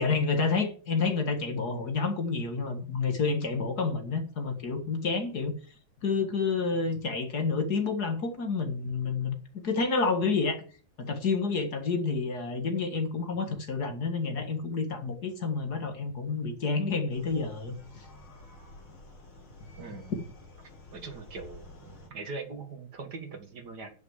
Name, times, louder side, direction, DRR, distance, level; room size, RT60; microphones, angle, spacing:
voice 1, 0.0-5.6 6.0-10.6 11.0-18.1 20.2-20.3, left 4 dB, 50° left, 2.2 m, -29 dB
sound 1, 17.1-22.1, left 2 dB, 80° left, 3.9 m, -50 dB
voice 2, 19.8-20.1 20.9-23.9, right 4 dB, 55° right, 2.4 m, -41 dB
10.5 x 6.4 x 7.4 m
omnidirectional pair, 2.2 m